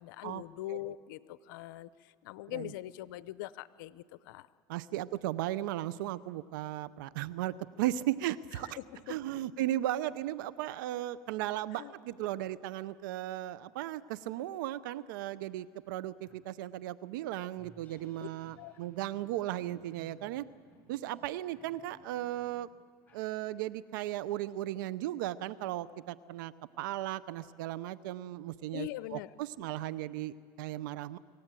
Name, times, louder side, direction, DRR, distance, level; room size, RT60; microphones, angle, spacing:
voice 1, 0.0-4.5 8.5-9.2 11.7-11.9 18.2-18.3 18.6-18.7 28.7-29.3 29.6-29.7, left 16 dB, 85° left, 16 dB, 0.7 m, -42 dB
voice 2, 4.7-8.8 9.1-20.5 20.9-22.7 23.1-31.2, right 14 dB, 85° right, 17 dB, 0.6 m, -36 dB
sound 1, 15.4-15.5 15.9-23.9, left 1 dB, 15° left, 7.6 m, -62 dB
26.0 x 15.0 x 9.0 m, 2.1 s
supercardioid pair, 110°, 10 cm